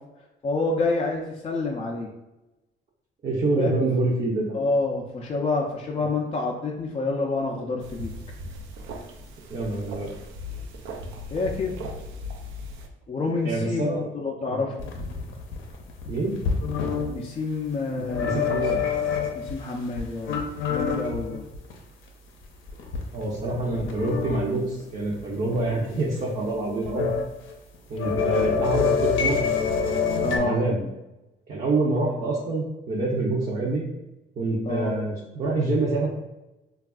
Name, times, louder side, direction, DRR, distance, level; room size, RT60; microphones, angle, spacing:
voice 1, 0.4-2.1 3.6-3.8 4.5-8.1 11.3-11.8 13.1-14.8 17.1-18.6 19.3-20.4 20.7-21.5 30.2-30.6 34.6-34.9, left 3 dB, 30° left, -1 dB, 0.4 m, -28 dB
voice 2, 3.2-4.5 9.5-10.1 13.4-14.0 14.5-14.6 16.1-16.4 18.0-18.8 23.1-27.1 27.9-29.4 30.3-30.8 31.5-33.8 34.4-36.1, right 2 dB, 40° right, -5 dB, 0.6 m, -26 dB
sound 1, 7.8-12.9, left 1 dB, 85° right, 0.5 m, -38 dB
sound 2, 14.8-17.1 18.0-19.5 19.9-21.7 22.1-22.2 22.7-24.4 24.8-24.9 25.1-25.2 25.5-25.8 26.7-27.2 27.5-30.4, left 6 dB, 75° left, 0.6 m, -26 dB
3.4 x 2.3 x 2.3 m, 0.98 s
cardioid pair, 90°, 20 cm